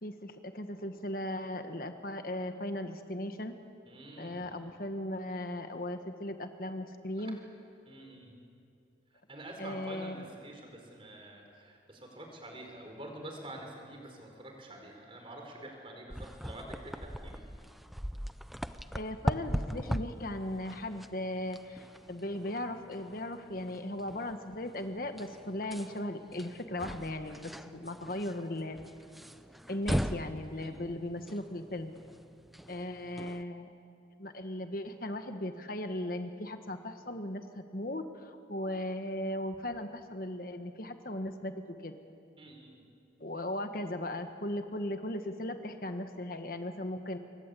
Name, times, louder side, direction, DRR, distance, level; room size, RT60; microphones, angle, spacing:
voice 1, 0.0-3.6 4.2-7.4 9.6-10.3 18.9-28.8 29.7-31.9 32.7-33.9 34.2-42.0 43.2-47.2, left 1 dB, 50° left, 7 dB, 1.3 m, -37 dB
voice 2, 3.9-4.4 7.2-7.3 7.9-8.3 9.3-17.4 30.5-30.9 42.4-42.8, right 1 dB, 30° right, 2 dB, 4.7 m, -47 dB
sound 1, 16.1-33.4, equal, ahead, 0.6 m, -40 dB
27.5 x 23.0 x 8.4 m, 2.5 s
head